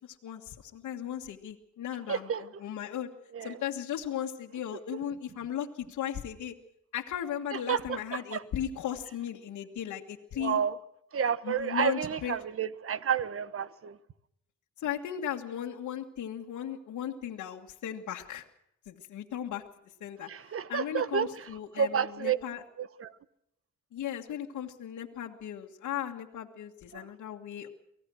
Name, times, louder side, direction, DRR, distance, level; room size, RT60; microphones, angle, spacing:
voice 1, 0.0-3.1 3.4-6.6 6.9-10.6 11.4-12.3 14.8-18.5 18.9-19.6 20.0-22.6 23.9-27.7, left 10 dB, 70° left, 1.9 m, -37 dB
voice 2, 2.1-2.4 3.3-3.6 7.7-8.0 8.3-8.4 10.4-10.8 11.1-14.0 20.3-21.3 21.8-22.4 22.8-23.1 26.9-27.0, right 7 dB, 45° right, 1.3 m, -30 dB
24.5 x 17.0 x 6.3 m
cardioid pair, 90°, 30 cm